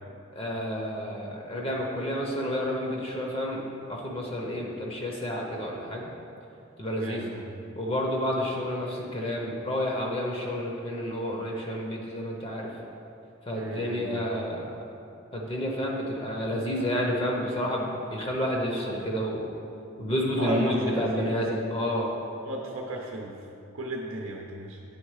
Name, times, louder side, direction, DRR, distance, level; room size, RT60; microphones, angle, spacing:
voice 1, 0.3-3.6 3.9-6.1 6.8-7.2 7.8-12.7 13.5-14.8 15.3-19.5 20.0-22.1, equal, 25° left, -1 dB, 0.7 m, -30 dB
voice 2, 6.9-7.5 13.5-14.2 20.4-21.3 22.5-23.4 23.7-24.8, right 1 dB, 85° right, 0 dB, 0.6 m, -34 dB
8.5 x 3.6 x 4.9 m, 2.7 s
head